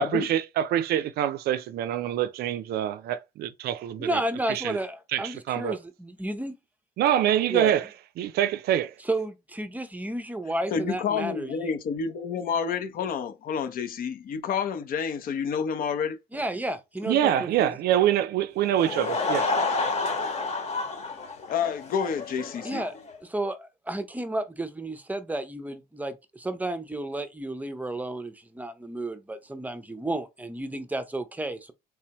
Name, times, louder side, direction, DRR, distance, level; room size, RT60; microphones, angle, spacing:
voice 1, 0.0-4.2 4.5-4.8 5.1-5.8 7.0-7.9 8.2-9.0 17.0-19.5, right 11 dB, 70° right, 0.5 m, -25 dB
voice 2, 4.0-6.5 7.5-7.7 9.1-11.5 16.3-17.7 22.6-22.9 23.2-31.7, right 1 dB, 10° right, 0.6 m, -32 dB
voice 3, 10.7-16.2 21.5-22.8, left 6 dB, 60° left, 0.8 m, -29 dB
Laughter / Crowd, 18.6-23.2, left 3 dB, 40° left, 1.1 m, -29 dB
3.3 x 3.3 x 2.9 m
cardioid pair, 110°, 17 cm